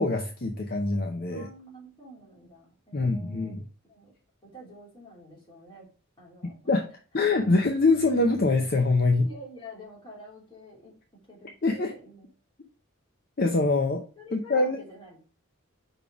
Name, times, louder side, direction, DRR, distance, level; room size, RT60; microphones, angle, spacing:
voice 1, 0.0-1.5 2.9-3.6 6.7-6.9 7.1-9.3 11.6-11.9 13.4-14.0 14.3-14.8, left 3 dB, 45° left, 4 dB, 0.7 m, -24 dB
voice 2, 1.3-4.1 4.4-5.9 6.2-6.6 9.2-12.3 14.2-15.2, equal, 25° left, -4 dB, 2.9 m, -47 dB
5.4 x 4.0 x 4.8 m, 0.37 s
head